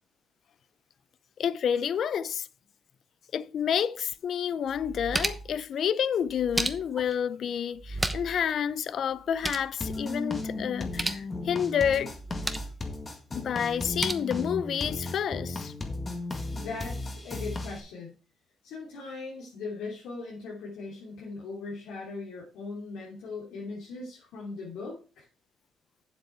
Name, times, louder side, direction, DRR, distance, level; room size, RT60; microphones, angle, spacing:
voice 1, 1.4-2.5 3.3-12.1 13.3-15.7, left 8 dB, 60° left, 0.5 m, -29 dB
sound 1, 4.1-4.2 4.7-5.6 6.3-7.1 7.8-8.4 8.7-8.8 9.1-9.7 10.8-11.2 12.1-12.8 13.7-14.1, right 2 dB, 10° right, 1.0 m, -33 dB
sound 2, 9.8-17.8, left 2 dB, 30° left, 1.8 m, -35 dB
voice 2, 16.5-18.1 18.6-25.2, left 3 dB, 90° left, 3.1 m, -39 dB
8.0 x 7.6 x 4.5 m
cardioid pair, 90°, 0 cm